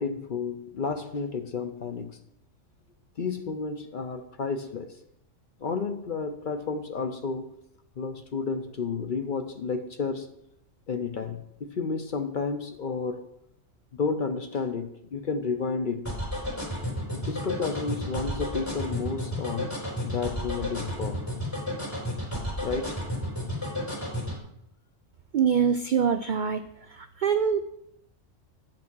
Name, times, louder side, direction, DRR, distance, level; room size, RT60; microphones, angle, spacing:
voice 1, 0.0-2.2 3.2-5.0 5.6-7.5 8.0-10.3 10.9-13.3 13.9-16.2 17.1-19.7 20.0-21.3 22.6-23.0, left 5 dB, 50° left, 0.7 m, -31 dB
sound 1, 16.1-24.4, equal, 10° left, 3.5 m, -31 dB
voice 2, 25.3-26.6 27.2-27.6, right 7 dB, 70° right, 0.4 m, -23 dB
8.8 x 6.0 x 6.0 m
omnidirectional pair, 1.3 m